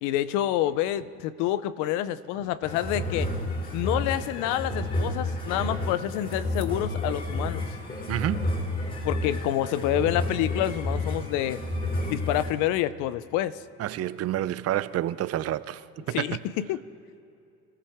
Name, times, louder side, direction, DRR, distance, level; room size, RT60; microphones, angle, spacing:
voice 1, 0.0-3.3 3.7-7.6 9.0-11.6 12.1-13.6 16.1-16.8, left 12 dB, 85° left, 0.7 m, -28 dB
sound 1, 2.6-12.5, left 1 dB, 30° left, 4.5 m, -30 dB
voice 2, 8.1-8.5 13.8-16.4, right 13 dB, 55° right, 0.6 m, -29 dB
26.0 x 14.5 x 3.6 m
supercardioid pair, 90°, 30 cm